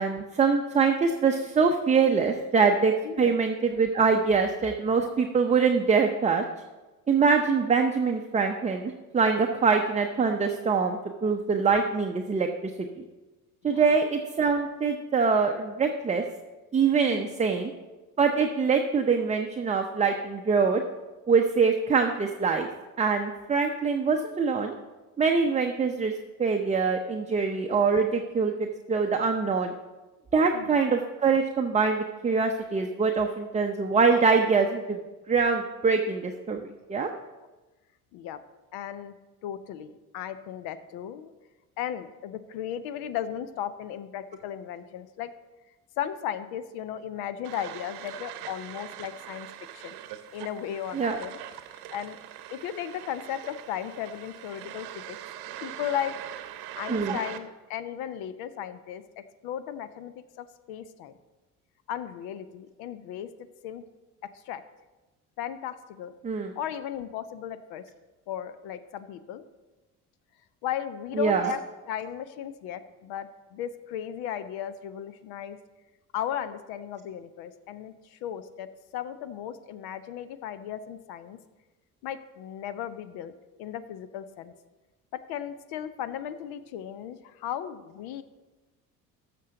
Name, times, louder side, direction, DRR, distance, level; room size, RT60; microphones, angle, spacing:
voice 1, 0.0-6.4 7.1-12.5 12.8-13.0 13.6-16.2 16.7-17.7 18.2-20.8 21.3-22.7 23.0-24.7 25.2-26.1 26.4-28.5 28.9-29.7 30.3-35.0 35.3-37.1 50.9-51.2 56.9-57.2 66.2-66.5 71.2-71.5, right 5 dB, 15° right, 3 dB, 0.6 m, -24 dB
voice 2, 3.0-3.4 13.6-13.8 17.1-17.4 30.5-30.8 38.1-38.4 38.7-39.1 39.4-41.3 41.8-45.3 46.0-49.5 49.7-50.0 50.3-51.4 51.9-52.2 52.5-55.2 55.6-56.1 56.7-61.1 61.9-63.3 63.6-63.8 64.5-64.6 65.4-66.1 66.6-67.8 68.3-69.4 70.6-71.6 71.9-75.6 76.1-81.4 82.0-83.3 83.6-84.5 85.1-88.2, left 10 dB, 55° left, 13 dB, 0.7 m, -36 dB
sound 1, 47.4-57.4, right 12 dB, 55° right, 0.9 m, -42 dB
13.0 x 6.8 x 3.8 m, 1.2 s
figure-of-eight pair, 55°, 45 cm